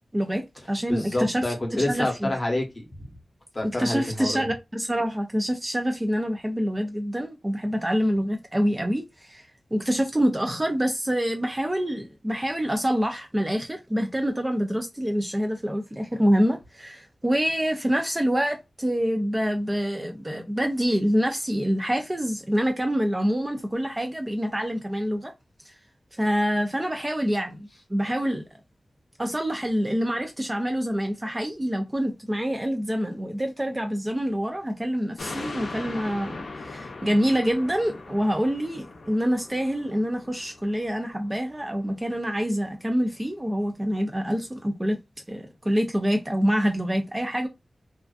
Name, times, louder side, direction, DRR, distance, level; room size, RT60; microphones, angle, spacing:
voice 1, 0.1-1.5 1.8-2.3 3.8-25.3 25.6-25.8 26.1-28.4 29.2-45.0 45.3-47.5, equal, 15° right, 0.4 m, -26 dB
voice 2, 0.9-3.0 3.5-4.4, left 1 dB, 30° left, 0.8 m, -28 dB
sound 1, 35.2-41.8 42.3-42.4, left 3 dB, 70° left, 0.5 m, -40 dB
2.4 x 2.3 x 2.3 m
wide cardioid pair, 125°, 0 cm